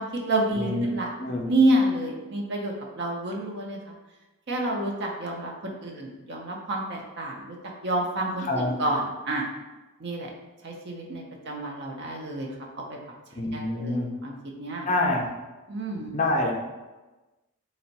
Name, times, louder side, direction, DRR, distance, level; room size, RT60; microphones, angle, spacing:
voice 1, 0.0-1.1 1.5-3.8 4.5-7.6 7.8-9.5 10.0-10.3 10.6-12.5 12.9-13.0 13.5-14.9 15.7-16.2, right 1 dB, 50° right, 0 dB, 0.6 m, -28 dB
voice 2, 1.2-1.5 8.4-8.8 13.4-14.1 14.9-15.3 16.1-16.5, left 2 dB, 35° left, 1 dB, 0.5 m, -26 dB
3.4 x 2.1 x 4.0 m, 1.1 s
head